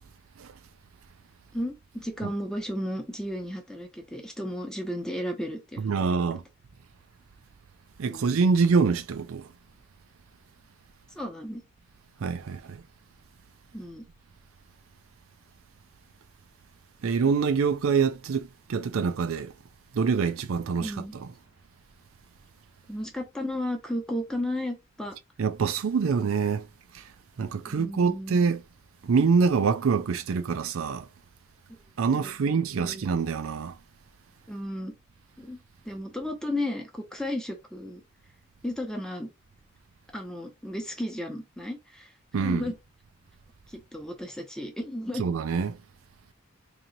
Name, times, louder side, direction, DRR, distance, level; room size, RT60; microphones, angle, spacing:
voice 1, 1.5-6.2 8.1-8.4 11.1-11.6 13.7-14.0 20.7-21.2 22.9-25.2 27.7-28.4 31.7-31.8 32.1-33.1 34.5-34.9 35.4-35.6 35.8-38.0 38.6-39.3 40.1-42.8 43.7-45.3, left 1 dB, 5° left, 0.8 m, -34 dB
voice 2, 5.8-6.4 8.0-9.5 12.2-12.8 17.0-19.5 19.9-20.9 25.4-26.7 26.9-27.0 27.4-28.6 29.0-31.1 32.0-33.7 42.3-42.6 45.2-45.8, right 5 dB, 85° right, 0.4 m, -25 dB
3.0 x 2.7 x 3.9 m
head